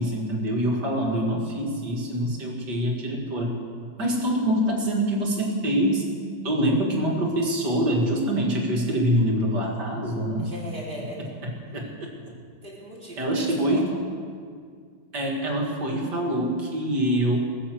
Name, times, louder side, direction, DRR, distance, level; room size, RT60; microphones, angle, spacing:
voice 1, 0.0-3.6 4.0-6.1 6.4-10.5 11.4-11.9 13.2-13.8 15.1-17.4, equal, 60° right, 0 dB, 2.7 m, -25 dB
voice 2, 10.4-11.2 12.6-13.8, equal, 25° right, -5 dB, 3.8 m, -38 dB
19.5 x 7.4 x 7.7 m, 2.1 s
omnidirectional pair, 2.0 m